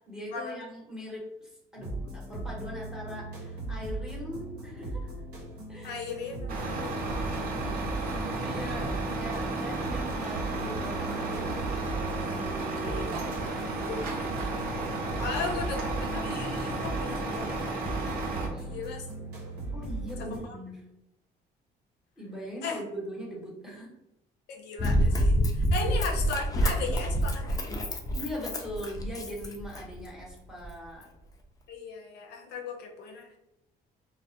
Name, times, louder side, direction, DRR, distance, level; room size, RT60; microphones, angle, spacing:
voice 1, 0.1-5.1 5.7-6.0 8.1-11.9 12.3-13.1 13.4-14.5 18.5-18.8 19.7-20.8 22.2-23.9 25.8-25.9 28.1-31.1, equal, 5° right, -4 dB, 0.8 m, -41 dB
sound 1, 1.8-20.4, right 1 dB, 90° right, 0.9 m, -38 dB
voice 2, 5.8-6.5 6.8-7.0 12.8-13.1 13.9-14.0 15.2-17.8 18.6-19.1 20.4-20.6 22.6-22.8 24.5-27.6 31.7-33.4, left 5 dB, 75° left, 1 dB, 0.5 m, -36 dB
Truck, 6.5-18.5, right 3 dB, 60° right, 0.5 m, -33 dB
Run, 24.8-30.1 30.6-30.7, equal, 20° left, 0.4 m, -27 dB
2.2 x 2.0 x 2.7 m, 0.87 s
cardioid pair, 110°, 17 cm